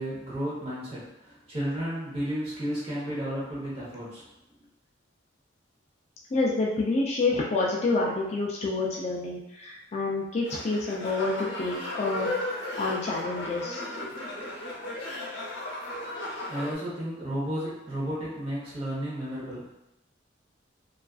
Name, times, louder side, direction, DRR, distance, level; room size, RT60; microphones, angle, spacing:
voice 1, 0.0-4.3 16.5-19.7, equal, 30° right, -7 dB, 0.8 m, -33 dB
voice 2, 6.3-12.3 12.8-13.8, left 3 dB, 35° left, -3 dB, 0.3 m, -28 dB
sound 1, 10.4-16.7, left 1 dB, 65° left, 0.7 m, -35 dB
2.4 x 2.4 x 2.3 m, 0.88 s
head